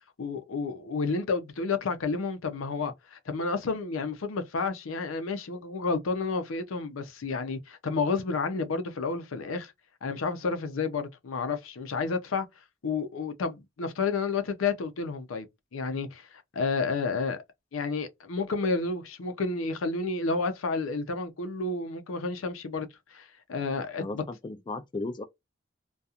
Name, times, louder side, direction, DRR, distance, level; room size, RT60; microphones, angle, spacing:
voice 1, 0.2-9.7 10.0-12.5 12.8-15.5 15.7-17.4 17.7-24.2, left 4 dB, 90° left, 0.5 m, -31 dB
voice 2, 24.0-25.2, left 2 dB, 25° left, 0.3 m, -35 dB
2.4 x 2.3 x 2.7 m
head